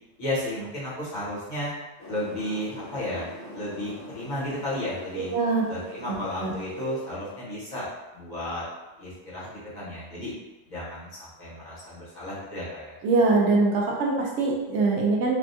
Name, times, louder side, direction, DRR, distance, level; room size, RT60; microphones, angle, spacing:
voice 1, 0.2-1.7 2.1-5.3 5.7-7.9 8.1-8.6 9.0-10.3 10.7-12.9, left 1 dB, 40° left, -9 dB, 1.1 m, -33 dB
sound 1, 2.0-7.1, left 1 dB, 65° left, 1.0 m, -42 dB
voice 2, 5.3-5.6 6.4-6.5 13.0-15.3, right 3 dB, 80° right, -1 dB, 0.9 m, -22 dB
3.4 x 2.3 x 2.6 m, 1.1 s
omnidirectional pair, 1.2 m